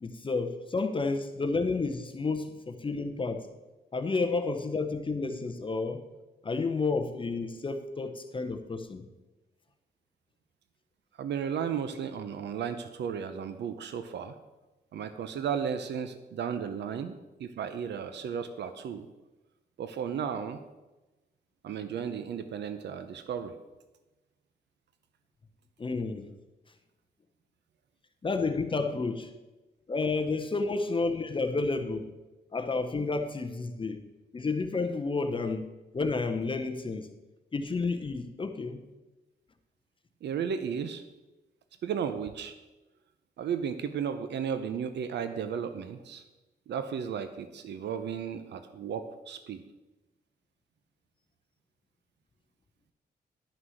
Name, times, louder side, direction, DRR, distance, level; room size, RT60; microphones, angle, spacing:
voice 1, 0.0-3.5 3.9-6.0 6.4-9.1 25.8-26.3 28.2-29.3 29.9-32.1 32.5-34.0 34.3-37.1 37.5-38.8, left 3 dB, 30° left, 7 dB, 0.8 m, -31 dB
voice 2, 11.2-14.3 14.9-17.1 17.4-19.1 19.8-20.6 21.6-23.5 40.2-41.0 41.8-42.5 43.4-46.2 46.7-49.6, right 7 dB, 85° right, 10 dB, 0.7 m, -34 dB
11.0 x 6.0 x 6.4 m, 1.1 s
wide cardioid pair, 125°, 17 cm